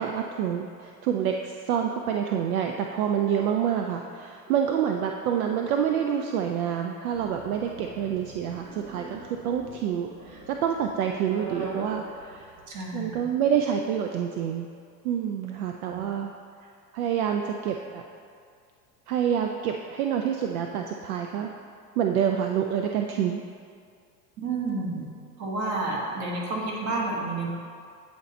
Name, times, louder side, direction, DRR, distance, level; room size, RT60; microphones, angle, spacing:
voice 1, 0.0-12.5 12.9-14.7 15.0-16.3 16.9-18.0 19.1-21.5 22.0-23.4, right 8 dB, 60° right, 3 dB, 0.5 m, -27 dB
sound 1, 7.1-12.8, right 3 dB, 85° right, 1.2 m, -41 dB
voice 2, 12.7-13.2 15.9-16.1 24.4-25.1 25.4-27.5, right 2 dB, 35° right, -2 dB, 1.3 m, -30 dB
8.5 x 2.9 x 4.3 m, 2.3 s
figure-of-eight pair, 80°, 50 cm